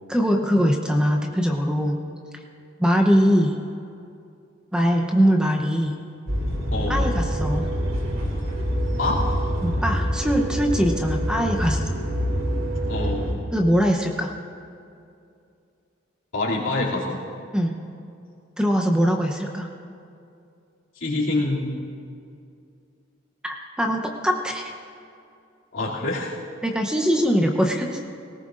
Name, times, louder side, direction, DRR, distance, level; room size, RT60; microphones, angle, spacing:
voice 1, 0.1-2.0 2.8-3.6 4.7-5.9 6.9-7.7 9.6-11.8 13.5-14.3 17.5-17.7 18.6-19.7 23.4-24.7 26.6-28.0, equal, 5° right, 2 dB, 0.7 m, -22 dB
sound 1, 6.3-13.3, equal, 85° right, 2.6 m, -25 dB
voice 2, 6.7-7.1 9.0-9.2 12.9-13.3 16.3-17.2 21.0-21.8 25.7-26.3, left 2 dB, 70° left, -5 dB, 2.7 m, -26 dB
19.5 x 18.5 x 2.5 m, 2.5 s
head